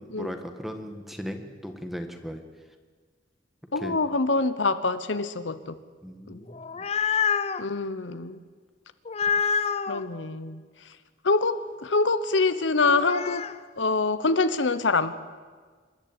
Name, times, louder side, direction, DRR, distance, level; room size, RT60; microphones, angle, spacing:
voice 1, 0.0-2.4 3.8-4.0 6.0-6.6, equal, ahead, 6 dB, 1.6 m, -37 dB
voice 2, 3.7-5.8 6.3-6.4 7.6-8.4 9.9-10.6 11.2-13.4 13.8-15.1, left 3 dB, 80° left, 12 dB, 1.0 m, -25 dB
sound 1, 6.5-7.6 9.1-10.0 12.8-13.6, left 6 dB, 35° left, 0.6 m, -27 dB
27.0 x 11.5 x 9.0 m, 1.5 s
head